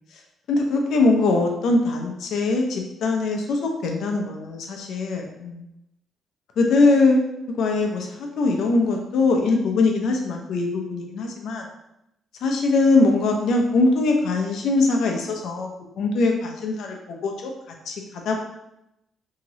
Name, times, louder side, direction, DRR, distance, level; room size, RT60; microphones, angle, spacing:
voice 1, 0.5-5.6 6.6-11.7 12.4-15.7 16.0-17.5 17.9-18.4, left 3 dB, 75° left, 2 dB, 0.6 m, -22 dB
2.9 x 2.8 x 2.7 m, 0.84 s
cardioid pair, 90°, 0 cm